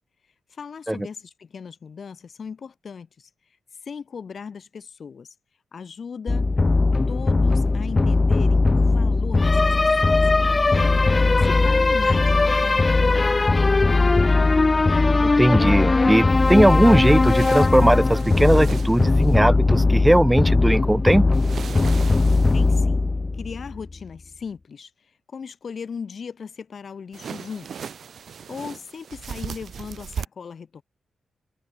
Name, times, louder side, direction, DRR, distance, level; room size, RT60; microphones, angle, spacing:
voice 1, 0.5-3.3 3.8-5.3 5.7-6.5 7.1-10.2 10.7-13.4 22.5-23.1 23.4-24.9 25.3-27.8 28.5-30.8, left 6 dB, 60° left, 2.0 m, -37 dB
sound 1, 6.3-23.9, left 3 dB, 35° left, 0.6 m, -19 dB
voice 2, 15.2-21.3, right 1 dB, 10° right, 0.3 m, -18 dB
sound 2, 16.3-19.4 21.3-22.8 27.1-30.3, right 7 dB, 70° right, 2.3 m, -38 dB
supercardioid pair, 50°, 0 cm